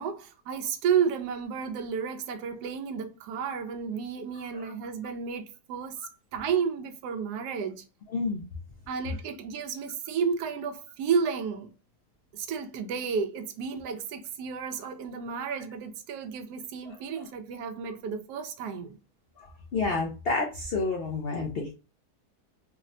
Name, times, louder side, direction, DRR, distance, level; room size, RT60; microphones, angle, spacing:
voice 1, 0.0-7.9 8.9-11.7 12.3-19.0, right 6 dB, 85° right, 1.1 m, -32 dB
voice 2, 8.1-8.4 19.4-21.7, left 3 dB, 85° left, 0.5 m, -29 dB
3.6 x 2.1 x 2.6 m
omnidirectional pair, 1.7 m